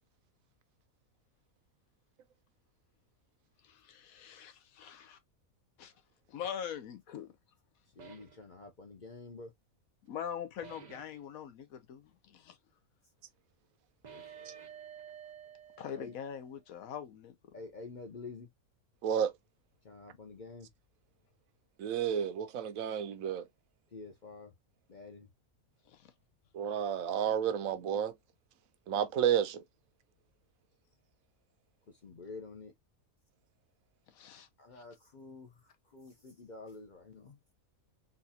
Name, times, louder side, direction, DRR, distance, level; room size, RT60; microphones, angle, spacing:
voice 1, 3.6-5.2 5.8-5.9 6.3-7.3 10.0-12.6 15.8-17.5 25.9-26.1 34.1-34.5, left 8 dB, 75° left, 1.1 m, -43 dB
voice 2, 7.9-9.5 14.1-14.6 15.9-16.1 17.5-18.5 19.8-20.7 23.9-24.5 24.9-25.3 31.9-32.7 34.6-37.4, left 3 dB, 45° left, 0.6 m, -48 dB
sound 1, 8.0-8.4 10.6-11.2 14.0-16.5, right 8 dB, 45° right, 0.6 m, -51 dB
voice 3, 19.0-19.3 21.8-23.5 26.5-28.1 28.9-29.6, right 8 dB, 75° right, 1.0 m, -31 dB
4.0 x 2.4 x 2.7 m
omnidirectional pair, 1.5 m